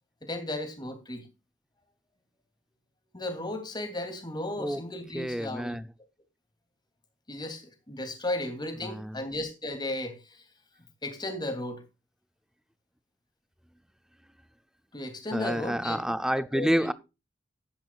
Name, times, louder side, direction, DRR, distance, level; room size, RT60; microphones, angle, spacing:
voice 1, 0.2-1.3 3.1-5.8 7.3-10.4 11.0-11.8 14.9-16.1 16.5-16.9, left 1 dB, 20° left, 2.7 m, -35 dB
voice 2, 5.1-5.9 8.8-9.2 15.3-16.9, equal, 5° right, 0.5 m, -29 dB
14.0 x 10.5 x 2.4 m
head